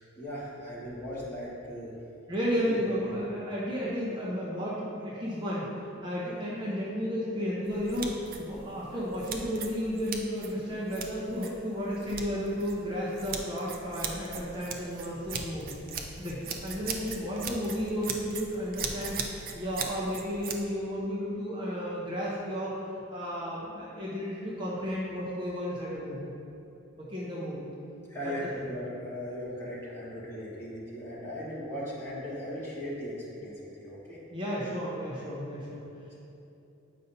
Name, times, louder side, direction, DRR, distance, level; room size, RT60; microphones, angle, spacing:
voice 1, 0.0-1.9 2.6-3.1 28.1-34.2, equal, 15° left, -9 dB, 1.5 m, -38 dB
voice 2, 2.3-15.8 16.2-19.2 19.5-22.7 23.1-26.3 27.0-27.7 28.2-28.7 34.3-35.9, equal, 25° right, -7 dB, 0.9 m, -33 dB
sound 1, 7.6-20.6, right 5 dB, 45° right, 0.5 m, -39 dB
8.4 x 5.3 x 2.7 m, 2.8 s
head